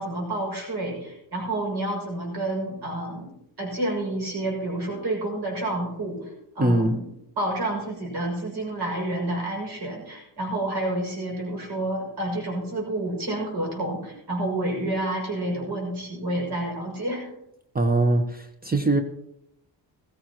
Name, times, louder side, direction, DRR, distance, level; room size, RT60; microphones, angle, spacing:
voice 1, 0.0-3.3 3.6-17.3, right 1 dB, 55° right, -1 dB, 6.6 m, -29 dB
voice 2, 6.6-7.0 17.7-19.0, right 2 dB, 20° right, 7 dB, 1.0 m, -22 dB
15.5 x 15.5 x 3.0 m, 0.81 s
cardioid pair, 80°, 45 cm